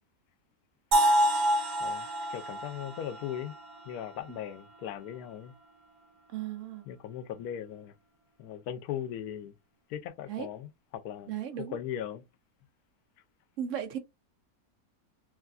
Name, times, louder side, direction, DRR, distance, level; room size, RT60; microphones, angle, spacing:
sound 1, 0.9-4.8, right 1 dB, 85° right, 1.4 m, -28 dB
voice 1, 1.8-3.5 3.8-5.5 6.9-7.9 8.4-9.6 9.9-11.3 11.7-12.2, left 10 dB, 85° left, 1.1 m, -38 dB
voice 2, 6.3-6.8 10.3-10.5 11.3-11.8 13.6-14.0, right 10 dB, 70° right, 0.8 m, -35 dB
3.2 x 2.4 x 2.4 m
omnidirectional pair, 1.6 m